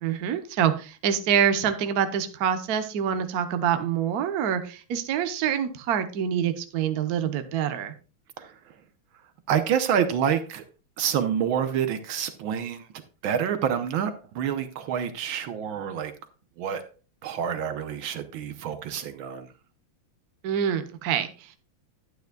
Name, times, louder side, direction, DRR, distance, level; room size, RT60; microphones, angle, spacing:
voice 1, 0.0-7.9 20.4-21.6, right 8 dB, 55° right, 1.2 m, -26 dB
voice 2, 8.4-8.8 9.5-10.6 11.0-12.9 13.2-16.1 16.6-16.9 17.2-19.5, right 8 dB, 70° right, 1.5 m, -27 dB
11.5 x 9.1 x 2.3 m
omnidirectional pair, 2.3 m